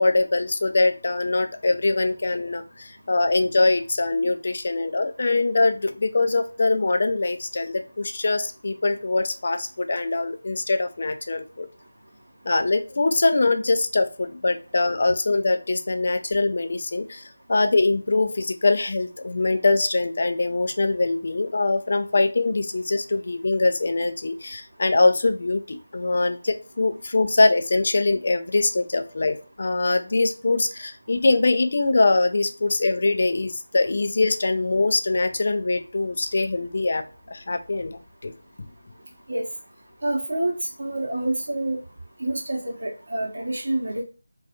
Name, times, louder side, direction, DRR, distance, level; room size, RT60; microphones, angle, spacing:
voice 1, 0.0-11.7 12.5-38.3, left 3 dB, 45° left, 7 dB, 0.3 m, -23 dB
voice 2, 40.0-41.8 42.2-44.0, right 1 dB, 55° right, -1 dB, 0.7 m, -27 dB
2.3 x 2.3 x 2.7 m, 0.34 s
figure-of-eight pair, 165°, 0 cm